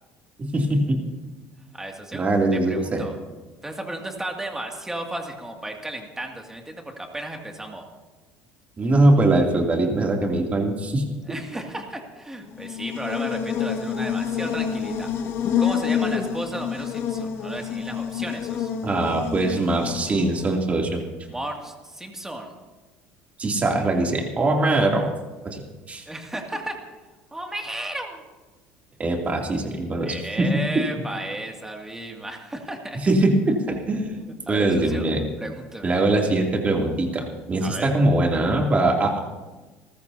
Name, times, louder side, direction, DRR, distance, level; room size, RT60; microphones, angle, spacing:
voice 1, 0.4-1.0 2.1-3.0 8.8-11.1 18.8-21.0 23.4-25.1 25.4-25.6 25.9-26.0 29.0-30.6 33.0-34.2 34.5-35.2 35.8-39.2, right 2 dB, 25° right, 0 dB, 2.8 m, -22 dB
voice 2, 1.7-2.2 2.5-3.1 3.6-7.9 11.3-15.1 15.6-18.7 21.3-22.5 26.1-26.8 27.3-28.2 30.0-33.1 34.2-35.1 35.4-36.0 37.6-37.9, right 1 dB, 10° right, 2 dB, 2.4 m, -34 dB
Buzz, 12.5-20.6, left 8 dB, 55° left, 1.8 m, -28 dB
29.5 x 14.0 x 2.8 m, 1.2 s
cardioid pair, 115°, 5 cm